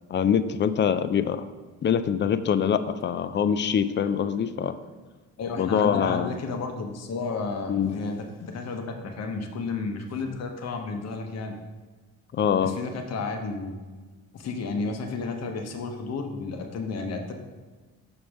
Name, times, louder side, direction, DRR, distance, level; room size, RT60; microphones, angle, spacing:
voice 1, 0.1-1.5 1.8-4.8 5.6-6.3 7.7-7.9 12.3-12.7, left 8 dB, 35° left, 13 dB, 0.5 m, -24 dB
voice 2, 5.4-11.6 12.6-13.8 14.3-17.3, left 4 dB, 55° left, 4 dB, 1.0 m, -32 dB
7.0 x 6.1 x 3.5 m, 1.3 s
cardioid pair, 90°, 32 cm